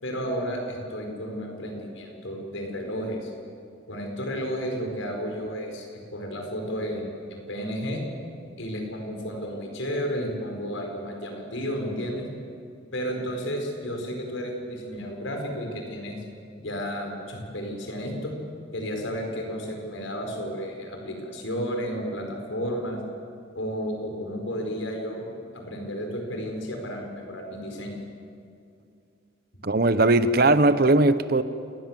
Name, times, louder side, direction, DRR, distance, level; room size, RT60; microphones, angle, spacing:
voice 1, 0.0-3.3 3.9-5.9 6.1-8.0 8.6-12.3 12.9-16.2 16.6-18.3 18.7-23.0 23.5-25.2 25.5-28.0, equal, 80° left, 2 dB, 5.4 m, -32 dB
voice 2, 29.6-31.4, right 2 dB, 50° right, 13 dB, 0.9 m, -19 dB
28.0 x 19.5 x 7.7 m, 2.4 s
head